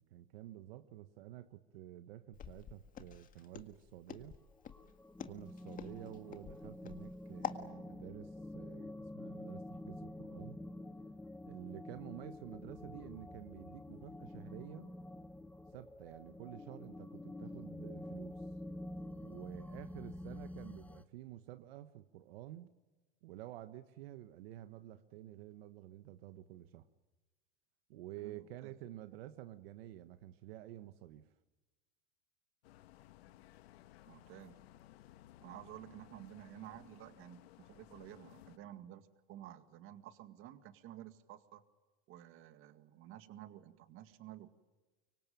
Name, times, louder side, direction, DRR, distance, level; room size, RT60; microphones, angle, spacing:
voice 1, 0.0-4.4 5.2-10.6 11.4-14.9 15.7-18.5 19.2-22.7 23.2-26.9 27.9-31.3, right 14 dB, 75° right, 10 dB, 1.4 m, -50 dB
Walk footsteps, 2.3-7.7, left 9 dB, 25° left, 1.8 m, -46 dB
sound 1, 4.6-21.0, left 1 dB, 5° left, 0.9 m, -48 dB
voice 2, 28.2-28.7 34.1-34.6 35.4-41.6 42.1-44.5, right 12 dB, 45° right, 9 dB, 2.1 m, -52 dB
sound 2, 32.6-38.6, left 14 dB, 80° left, 1.5 m, -59 dB
25.0 x 24.0 x 9.1 m, 1.2 s
supercardioid pair, 140°, 30 cm